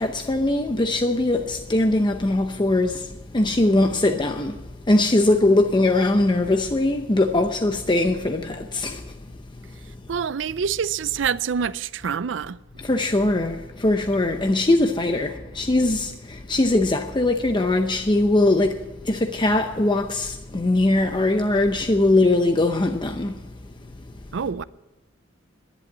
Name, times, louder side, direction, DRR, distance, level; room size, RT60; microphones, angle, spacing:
voice 1, 0.0-9.1 12.8-23.5, left 2 dB, 25° left, 0.7 m, -21 dB
voice 2, 10.1-12.6 24.3-24.6, right 7 dB, 70° right, 0.5 m, -26 dB
11.0 x 11.0 x 8.5 m
head